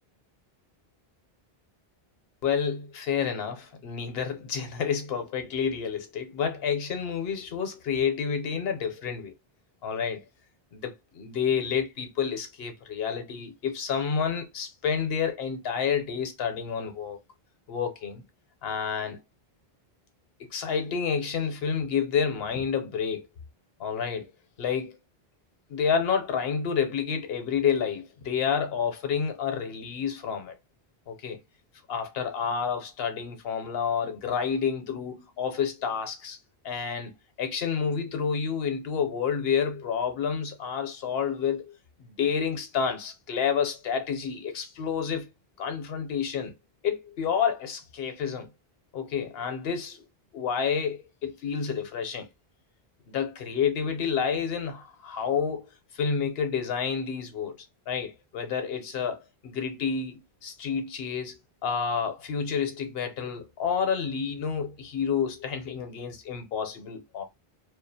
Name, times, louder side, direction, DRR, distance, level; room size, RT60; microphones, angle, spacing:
voice 1, 2.4-9.3 9.8-10.2 10.7-17.2 17.7-18.2 18.6-19.2 20.4-23.3 23.8-24.3 24.6-25.0 25.7-30.5 31.1-31.4 31.9-36.4 36.6-37.1 37.4-41.7 42.0-45.3 45.6-46.5 46.8-48.5 48.9-50.0 50.3-52.3 53.1-57.6 57.9-67.2, left 7 dB, 75° left, 0.9 m, -29 dB
2.4 x 2.1 x 2.6 m
omnidirectional pair, 1.0 m